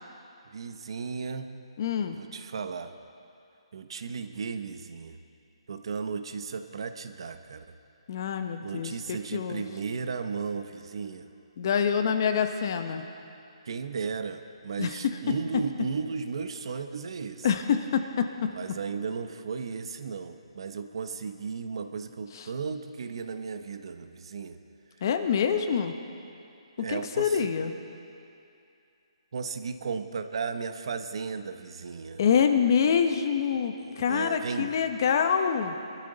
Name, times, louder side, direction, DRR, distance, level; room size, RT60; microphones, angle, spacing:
voice 1, 0.5-1.5 2.1-2.9 3.7-5.2 5.7-7.8 8.6-11.3 13.7-17.5 18.5-24.6 26.8-27.5 29.3-32.2 33.8-34.7, right 5 dB, 55° right, 9 dB, 0.9 m, -35 dB
voice 2, 1.8-2.2 8.1-9.6 11.6-13.0 14.8-15.3 17.4-18.5 22.3-22.4 25.0-25.9 26.8-27.7 32.2-35.7, left 7 dB, 40° left, 7 dB, 0.9 m, -26 dB
23.0 x 13.0 x 4.0 m, 2.6 s
hypercardioid pair, 165°, 3 cm